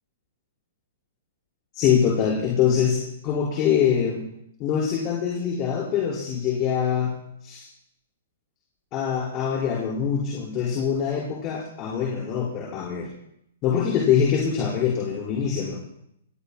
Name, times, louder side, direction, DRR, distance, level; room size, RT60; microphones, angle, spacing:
voice 1, 1.7-4.2 4.6-7.1 7.4-7.7 8.9-13.1 13.6-15.9, left 8 dB, 35° left, -4 dB, 4.9 m, -24 dB
28.0 x 18.5 x 2.2 m, 0.77 s
hypercardioid pair, 120°, 0 cm